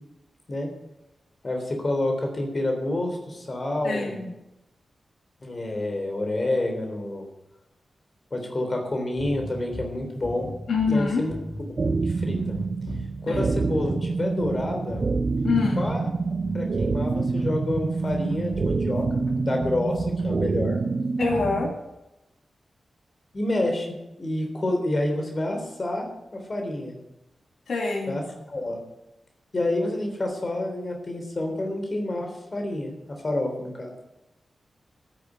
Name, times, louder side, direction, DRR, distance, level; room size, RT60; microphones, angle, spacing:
voice 1, 1.4-4.2 5.4-7.2 8.3-10.5 10.9-11.3 12.0-12.6 13.2-15.0 15.8-16.1 16.5-20.8 23.3-23.9 24.2-26.1 26.3-26.9 28.1-28.2 28.5-28.8 29.5-32.9 33.2-33.9, left 1 dB, 35° left, 3 dB, 3.5 m, -28 dB
voice 2, 3.8-4.3 10.7-11.2 13.3-13.4 15.4-15.8 21.2-21.7 27.7-28.2, left 4 dB, 80° left, 1 dB, 2.1 m, -25 dB
sound 1, 9.2-21.9, equal, 65° left, 2.7 m, -38 dB
sound 2, 11.8-21.7, right 4 dB, 45° right, 0.7 m, -27 dB
13.0 x 10.5 x 8.0 m, 0.94 s
wide cardioid pair, 140°, 0 cm